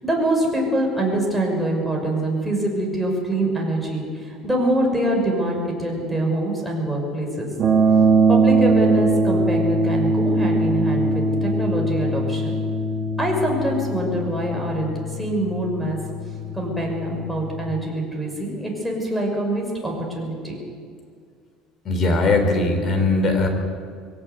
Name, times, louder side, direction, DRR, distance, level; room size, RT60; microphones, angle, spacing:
voice 1, 0.0-7.5 8.3-12.6 13.2-16.0 16.5-20.6, right 1 dB, ahead, 0 dB, 6.3 m, -24 dB
sound 1, 7.6-17.7, right 2 dB, 40° right, 2.8 m, -21 dB
voice 2, 21.8-23.5, left 2 dB, 35° left, 6 dB, 4.3 m, -19 dB
22.5 x 18.0 x 8.3 m, 2.1 s
cardioid pair, 135°, 0 cm